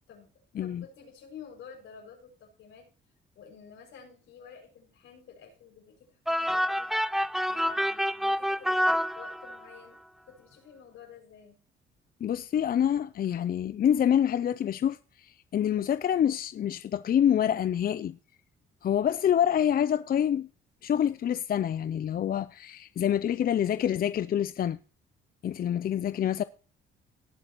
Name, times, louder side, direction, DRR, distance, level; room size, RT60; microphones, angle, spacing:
voice 1, 0.6-2.9 3.3-11.6, left 7 dB, 80° left, 6.2 m, -51 dB
sound 1, 6.3-9.8, equal, ahead, 0.5 m, -28 dB
voice 2, 12.2-18.2 18.8-20.5 20.8-24.8 25.4-26.4, left 9 dB, 50° left, 0.5 m, -26 dB
18.5 x 7.5 x 3.0 m
cardioid pair, 90°, 20 cm